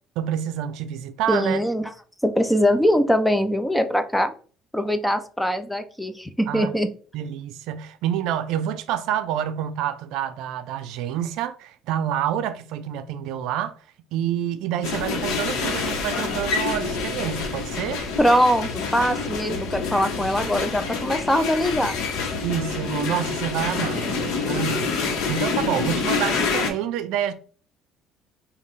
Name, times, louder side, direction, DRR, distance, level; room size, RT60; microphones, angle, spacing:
voice 1, 0.2-1.6 6.5-6.8 7.1-13.7 14.1-18.0 22.4-24.9 25.3-27.3, right 10 dB, 80° right, 0.4 m, -28 dB
voice 2, 1.3-1.9 2.2-4.3 4.7-6.9 18.2-22.0, equal, 5° left, 0.4 m, -22 dB
sound 1, 14.8-26.7, left 5 dB, 80° left, 1.0 m, -27 dB
5.2 x 2.4 x 3.2 m
cardioid pair, 140°, 0 cm